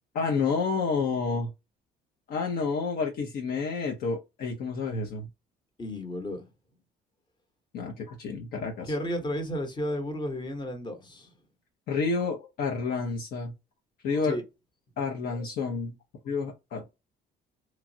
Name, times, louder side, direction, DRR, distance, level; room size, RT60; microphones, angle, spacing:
voice 1, 0.1-1.5 2.3-5.3 7.7-8.9 11.9-13.5 14.0-14.4 15.0-15.9 16.2-17.0, left 4 dB, 65° left, 0.7 m, -29 dB
voice 2, 5.8-6.4 8.8-11.3 14.3-14.4, equal, 25° left, 1.0 m, -32 dB
3.0 x 2.3 x 2.6 m
cardioid pair, 110°, 17 cm